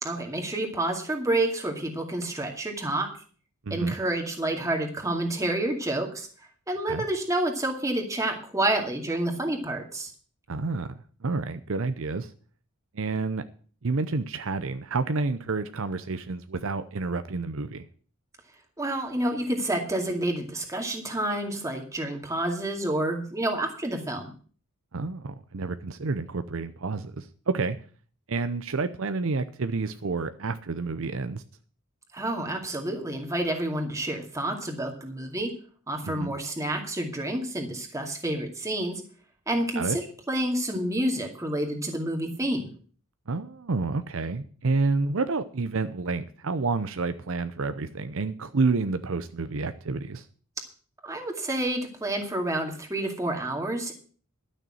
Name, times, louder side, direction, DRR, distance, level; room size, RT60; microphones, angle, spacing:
voice 1, 0.0-3.1 3.7-6.3 6.7-10.1 18.8-24.3 32.1-35.5 35.9-39.0 39.5-42.7 51.0-53.9, right 1 dB, 15° right, 2 dB, 2.3 m, -29 dB
voice 2, 10.5-10.9 11.2-12.3 12.9-13.4 13.8-17.9 24.9-27.8 28.3-31.4 36.0-36.3 39.8-40.0 43.3-50.3, right 3 dB, 60° right, 11 dB, 0.7 m, -29 dB
12.0 x 6.7 x 7.8 m, 0.43 s
head